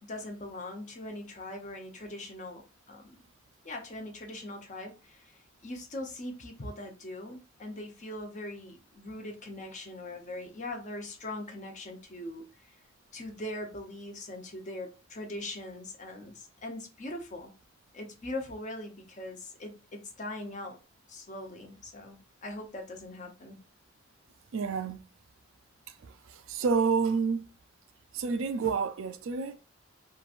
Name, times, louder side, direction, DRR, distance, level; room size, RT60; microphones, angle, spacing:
voice 1, 0.0-3.2 3.6-12.8 13.1-17.5 17.9-20.8 21.1-23.6, left 1 dB, 35° left, 0.7 m, -41 dB
voice 2, 24.5-25.0 26.0-27.4 28.1-29.5, right 5 dB, 75° right, 0.4 m, -29 dB
3.0 x 2.5 x 2.4 m
head